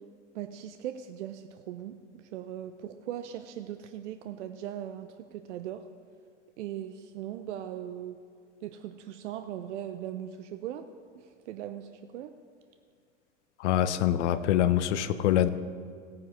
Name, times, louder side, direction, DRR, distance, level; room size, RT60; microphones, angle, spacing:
voice 1, 0.3-5.9 6.6-8.2 8.6-10.9 11.1-12.3, right 11 dB, 70° right, 10 dB, 0.6 m, -39 dB
voice 2, 13.6-15.5, left 11 dB, 65° left, 13 dB, 0.7 m, -25 dB
17.5 x 9.5 x 3.1 m, 2.2 s
hypercardioid pair, 85°, 37 cm